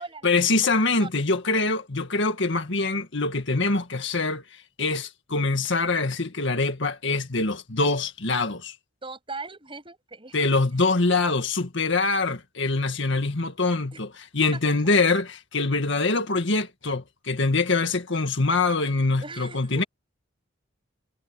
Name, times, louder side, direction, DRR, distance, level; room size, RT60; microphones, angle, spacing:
voice 1, 0.2-4.4 4.8-8.8 10.3-14.1 14.3-19.8, left 3 dB, 60° left, 1.9 m, -24 dB
voice 2, 9.0-10.5 13.9-14.0 19.2-19.9, right 3 dB, 25° right, 7.7 m, -39 dB
head